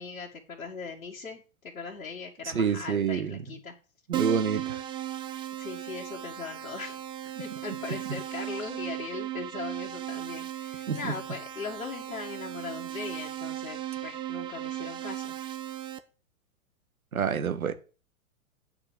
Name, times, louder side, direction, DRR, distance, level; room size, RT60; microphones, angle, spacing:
voice 1, 0.0-3.7 5.5-7.0 7.4-15.3, left 4 dB, 80° left, 1.9 m, -39 dB
voice 2, 2.5-3.4 4.1-4.8 10.9-11.1 17.1-17.7, right 7 dB, 80° right, 1.3 m, -27 dB
Keyboard (musical), 4.1-16.0, right 12 dB, 10° right, 0.4 m, -36 dB
8.8 x 5.0 x 7.4 m
figure-of-eight pair, 105°, 42 cm